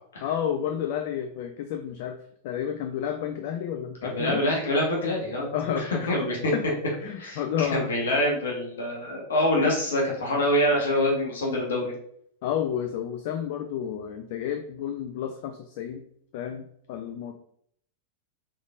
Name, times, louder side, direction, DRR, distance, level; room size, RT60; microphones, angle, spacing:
voice 1, 0.2-2.2 2.4-4.4 5.5-6.1 6.5-6.6 7.0-7.9 9.6-9.7 12.4-16.0 16.3-17.3, left 9 dB, 50° left, 6 dB, 0.4 m, -31 dB
voice 2, 4.0-6.5 7.2-11.9, left 1 dB, 65° left, -2 dB, 1.1 m, -26 dB
5.0 x 3.4 x 2.4 m, 0.67 s
figure-of-eight pair, 90°, 0 cm